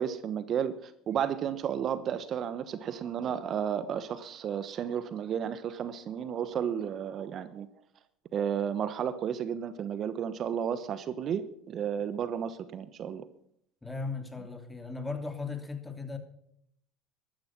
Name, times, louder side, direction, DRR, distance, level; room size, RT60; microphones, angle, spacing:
voice 1, 0.0-7.7 8.3-13.2, right 8 dB, 45° right, 1.1 m, -32 dB
voice 2, 13.8-16.2, left 4 dB, 10° left, 2.9 m, -37 dB
13.5 x 13.0 x 6.1 m
hypercardioid pair, 80°, 0 cm